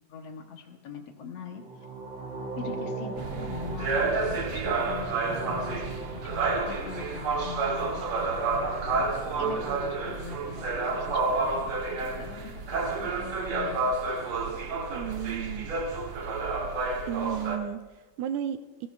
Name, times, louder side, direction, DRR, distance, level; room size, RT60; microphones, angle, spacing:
voice 1, 0.1-1.6 2.6-9.1 9.3-13.9, left 6 dB, 65° left, 3 dB, 1.7 m, -42 dB
sound 1, 1.6-11.7, right 3 dB, 45° right, 2.4 m, -40 dB
sound 2, 3.2-17.6, right 3 dB, 70° right, 1.3 m, -30 dB
voice 2, 14.9-15.7 17.1-18.9, right 10 dB, 90° right, 8 dB, 1.6 m, -33 dB
18.5 x 16.5 x 2.4 m, 1.2 s
omnidirectional pair, 4.1 m